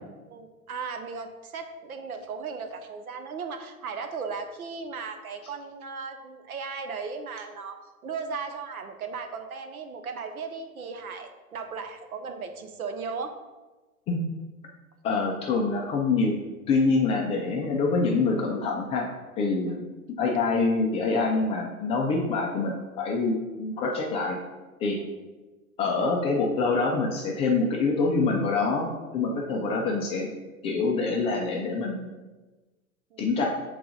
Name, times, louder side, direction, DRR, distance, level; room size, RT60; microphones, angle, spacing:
voice 1, 0.3-13.3 19.7-19.8 25.0-25.1 29.4-29.6 33.1-33.3, right 5 dB, 80° right, 6 dB, 0.8 m, -36 dB
voice 2, 15.0-16.4 16.7-19.1 19.4-19.8 20.2-24.4 24.8-25.0 25.8-30.3 30.6-32.1 33.2-33.5, left 3 dB, 15° left, -1 dB, 0.3 m, -25 dB
6.6 x 3.9 x 3.8 m, 1.2 s
figure-of-eight pair, 95°, 43 cm